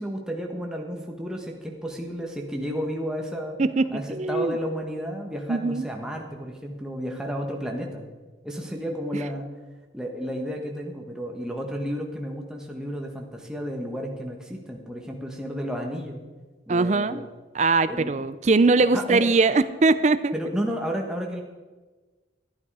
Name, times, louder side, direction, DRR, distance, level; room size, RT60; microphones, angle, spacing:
voice 1, 0.0-3.6 3.9-8.1 8.4-9.5 9.9-16.2 16.7-17.2 17.9-18.1 18.9-19.3 20.3-21.4, equal, 5° right, 1 dB, 1.3 m, -32 dB
voice 2, 3.6-4.6 5.5-5.9 16.7-17.3 17.5-20.3, right 3 dB, 35° right, 14 dB, 0.5 m, -21 dB
12.0 x 11.0 x 4.8 m, 1.3 s
head